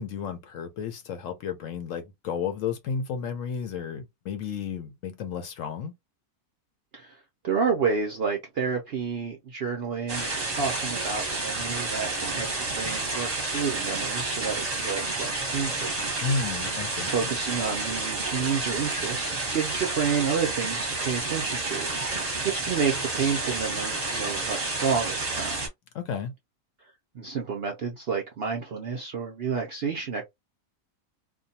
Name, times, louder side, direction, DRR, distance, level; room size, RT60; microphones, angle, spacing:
voice 1, 0.0-5.9 16.2-17.1 25.9-26.3, left 6 dB, 70° left, 0.9 m, -32 dB
voice 2, 7.4-16.0 17.0-25.6 27.1-30.2, right 6 dB, 65° right, 0.6 m, -30 dB
sound 1, 10.1-25.7, right 3 dB, 30° right, 0.8 m, -30 dB
2.5 x 2.2 x 2.7 m
omnidirectional pair, 1.6 m